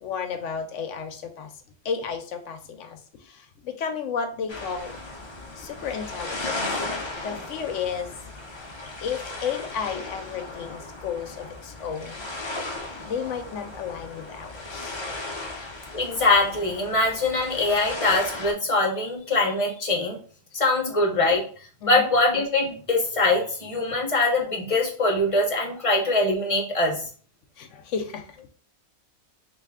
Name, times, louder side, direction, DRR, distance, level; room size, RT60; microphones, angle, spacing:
voice 1, 0.0-1.5 1.8-5.0 5.6-8.7 9.0-12.2 13.1-15.0 15.5-15.6 21.8-22.0 27.6-28.5, left 6 dB, 70° left, 6 dB, 0.9 m, -33 dB
sound 1, 4.5-18.5, left 2 dB, 50° left, 0.3 m, -36 dB
voice 2, 15.9-20.2 20.5-21.4 21.9-27.0, left 2 dB, 30° left, 0 dB, 0.7 m, -23 dB
3.2 x 2.6 x 3.5 m, 0.42 s
omnidirectional pair, 1.4 m